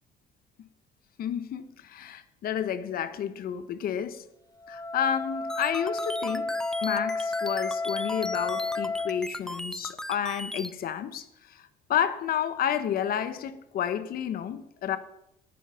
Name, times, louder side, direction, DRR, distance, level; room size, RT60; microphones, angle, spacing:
voice 1, 1.2-4.3 4.7-11.6 11.9-15.0, left 9 dB, 60° left, 1.2 m, -31 dB
Wind instrument woodwind instrument, 4.6-9.2, left 3 dB, 20° left, 1.3 m, -31 dB
sound 1, 5.5-10.7, left 1 dB, 5° left, 0.6 m, -37 dB
14.0 x 10.5 x 5.7 m
cardioid pair, 110°, 17 cm